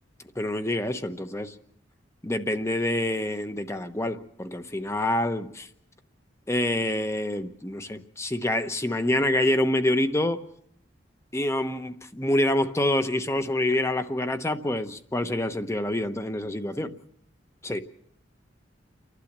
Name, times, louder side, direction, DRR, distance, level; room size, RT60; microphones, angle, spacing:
voice 1, 0.4-1.5 2.2-5.7 6.5-10.5 11.3-17.0 17.6-17.8, left 1 dB, 15° left, 9 dB, 1.0 m, -26 dB
30.0 x 12.0 x 7.5 m, 0.69 s
head